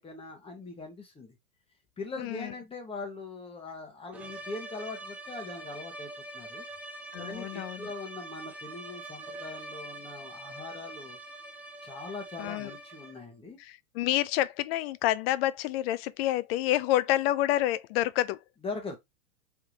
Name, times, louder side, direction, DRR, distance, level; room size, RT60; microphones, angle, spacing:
voice 1, 0.0-1.4 2.0-6.6 7.2-11.2 11.8-13.6 18.6-19.0, left 3 dB, 15° left, 1.5 m, -41 dB
voice 2, 2.2-2.5 7.1-7.9 12.4-12.7 13.6-18.4, left 14 dB, 45° left, 0.5 m, -28 dB
sound 1, 4.1-13.3, right 2 dB, 5° right, 0.4 m, -44 dB
3.6 x 3.5 x 3.0 m
hypercardioid pair, 115°, 42 cm